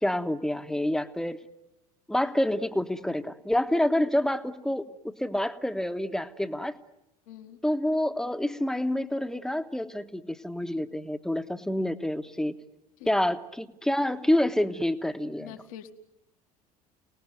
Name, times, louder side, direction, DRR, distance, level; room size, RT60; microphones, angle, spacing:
voice 1, 0.0-1.4 2.1-6.7 7.6-12.5 13.1-15.5, left 1 dB, 5° left, 10 dB, 1.3 m, -28 dB
voice 2, 7.3-7.6 13.0-13.1 15.4-15.9, left 10 dB, 65° left, 8 dB, 1.7 m, -44 dB
29.0 x 19.5 x 9.5 m, 0.91 s
figure-of-eight pair, 65°, 20 cm